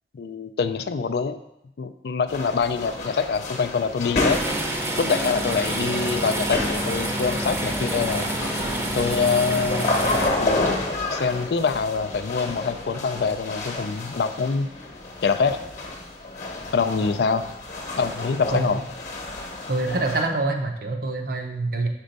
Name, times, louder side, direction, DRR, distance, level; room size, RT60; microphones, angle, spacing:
voice 1, 0.1-1.4 1.8-4.4 5.0-8.3 8.9-9.9 10.4-10.8 11.1-14.7 15.2-15.6 16.7-17.5 18.0-18.8, left 5 dB, 65° left, 10 dB, 0.4 m, -25 dB
sound 1, 2.3-20.2, left 2 dB, 40° left, 1.0 m, -31 dB
sound 2, 4.3-10.3, right 1 dB, 15° right, 0.6 m, -27 dB
voice 2, 19.7-21.9, right 2 dB, 55° right, 4 dB, 0.7 m, -25 dB
5.1 x 4.4 x 5.2 m, 0.84 s
head